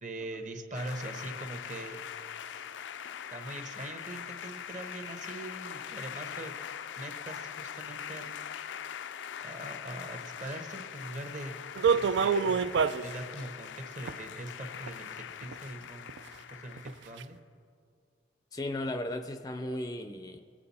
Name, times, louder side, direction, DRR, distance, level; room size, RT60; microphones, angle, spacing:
voice 1, 0.0-2.0 3.3-6.5 7.0-8.5 9.4-11.5 11.9-12.6 13.0-17.4, right 1 dB, 45° right, 5 dB, 1.1 m, -42 dB
sound 1, 0.7-17.2, left 8 dB, 90° left, 0.4 m, -42 dB
sound 2, 11.7-13.1 14.1-14.2 14.9-15.0 15.4-15.5 16.1-16.2 16.8-16.9 17.2-17.3, right 6 dB, 75° right, 0.3 m, -26 dB
voice 2, 18.5-20.4, left 1 dB, 20° left, 8 dB, 0.4 m, -35 dB
21.5 x 8.7 x 4.2 m, 2.3 s
head